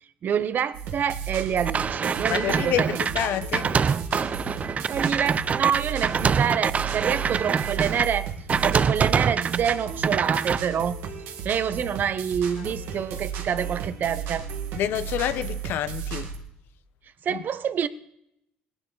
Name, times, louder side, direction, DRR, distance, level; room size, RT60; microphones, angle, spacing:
voice 1, 0.2-3.0 4.9-8.3 8.6-11.1 11.4-14.5 17.2-17.9, right 8 dB, 55° right, 0.8 m, -27 dB
sound 1, 0.7-16.4, right 6 dB, 75° right, 1.8 m, -35 dB
sound 2, 1.7-8.1 8.5-9.7 10.0-10.6, right 6 dB, 40° right, 0.4 m, -25 dB
voice 2, 2.3-3.7 14.7-16.3 17.3-17.4, left 10 dB, 70° left, 0.9 m, -28 dB
19.5 x 11.0 x 4.0 m
supercardioid pair, 75°, 4 cm